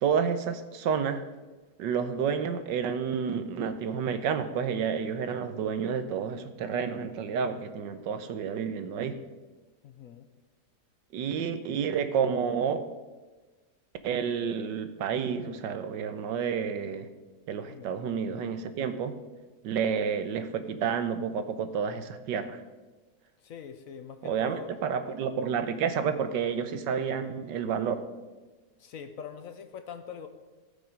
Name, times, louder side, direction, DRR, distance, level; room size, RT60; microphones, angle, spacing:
voice 1, 0.0-1.2 1.8-9.2 11.1-12.8 14.0-17.1 17.5-19.2 19.6-22.6 24.2-28.0, right 7 dB, 90° right, 10 dB, 1.5 m, -30 dB
voice 2, 9.8-10.3 17.6-17.9 23.4-24.7 28.8-30.3, left 6 dB, 60° left, 8 dB, 1.0 m, -43 dB
17.0 x 5.9 x 5.2 m, 1.2 s
omnidirectional pair, 1.9 m